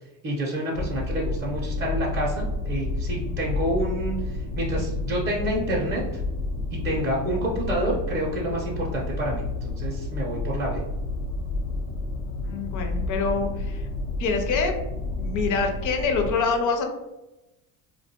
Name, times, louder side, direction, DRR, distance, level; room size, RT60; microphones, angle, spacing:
voice 1, 0.2-6.2 6.7-10.8, right 1 dB, 20° right, -4 dB, 0.6 m, -28 dB
sound 1, 0.7-16.3, left 2 dB, 85° left, 0.6 m, -30 dB
voice 2, 12.5-13.8 14.2-14.7 15.2-16.9, left 4 dB, 40° left, 4 dB, 0.6 m, -25 dB
2.3 x 2.2 x 2.8 m, 0.98 s
supercardioid pair, 85°, 49 cm